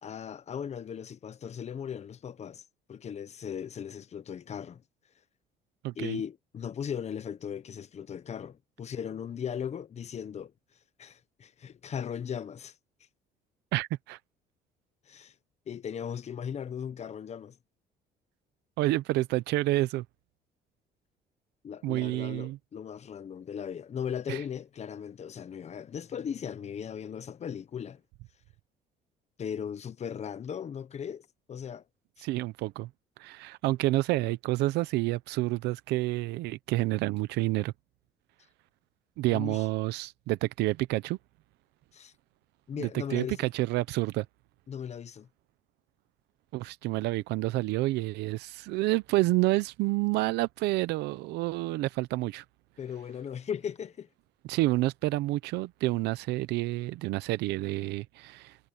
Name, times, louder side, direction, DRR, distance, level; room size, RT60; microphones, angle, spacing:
voice 1, 0.0-4.8 5.9-10.5 11.0-12.7 15.1-15.3 15.7-17.6 21.6-28.0 29.4-31.8 32.2-32.3 39.3-39.6 41.9-42.1 42.7-43.5 44.7-45.3 52.8-54.1, left 8 dB, 40° left, 1.1 m, -38 dB
voice 2, 5.8-6.2 13.7-14.2 18.8-20.0 21.8-22.6 24.3-24.4 32.2-32.9 33.2-37.7 39.2-41.2 42.7-44.2 46.5-52.4 54.5-58.6, right 18 dB, 85° right, 0.7 m, -29 dB
cardioid pair, 110°, 17 cm